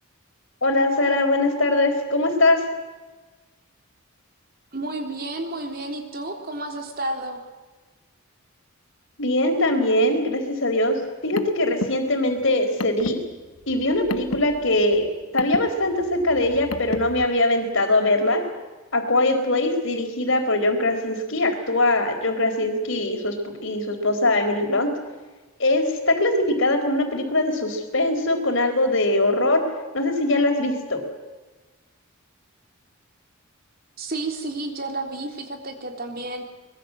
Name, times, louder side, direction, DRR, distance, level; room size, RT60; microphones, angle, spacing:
voice 1, 0.6-2.6 9.2-13.2 13.7-15.1 15.3-18.4 18.9-24.9 25.6-29.6 29.9-31.0, left 2 dB, 60° left, 5 dB, 4.3 m, -22 dB
voice 2, 4.7-7.4 34.0-36.4, right 2 dB, 45° right, 4 dB, 3.6 m, -31 dB
Car, 11.0-17.2, left 2 dB, 85° left, 1.2 m, -34 dB
24.0 x 21.5 x 7.7 m, 1.3 s
head